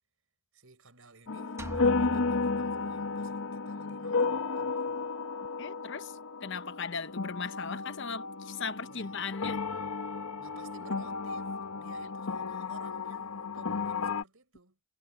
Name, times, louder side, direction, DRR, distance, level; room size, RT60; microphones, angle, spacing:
voice 1, 0.5-5.1 8.8-9.3 10.4-14.8, right 3 dB, 70° right, 5.6 m, -56 dB
sound 1, 1.3-14.2, left 4 dB, 80° left, 1.0 m, -33 dB
sound 2, 1.6-3.4, right 1 dB, 15° right, 1.0 m, -43 dB
voice 2, 5.6-9.6, left 5 dB, 55° left, 0.9 m, -38 dB
head